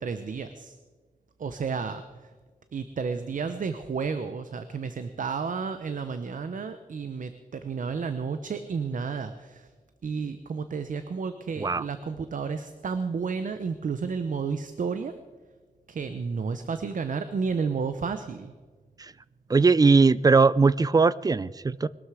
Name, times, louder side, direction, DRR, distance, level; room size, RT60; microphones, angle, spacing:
voice 1, 0.0-0.8 1.4-2.0 2.7-9.7 10.0-15.1 15.9-18.5, right 5 dB, 65° right, 10 dB, 0.8 m, -31 dB
voice 2, 19.5-21.9, right 4 dB, 25° right, 19 dB, 0.4 m, -20 dB
21.5 x 12.5 x 4.9 m, 1.4 s
wide cardioid pair, 155°, 15 cm